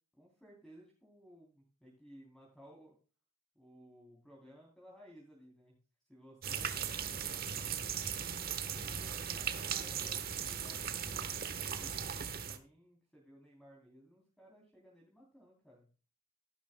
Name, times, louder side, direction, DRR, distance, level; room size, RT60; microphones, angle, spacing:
voice 1, 0.2-2.9 3.5-5.8 6.1-8.0 8.5-10.2 10.5-15.9, equal, 5° left, -3 dB, 3.4 m, -59 dB
sound 1, 6.4-12.6, right 7 dB, 45° right, 1.2 m, -38 dB
14.5 x 12.0 x 2.3 m, 0.36 s
head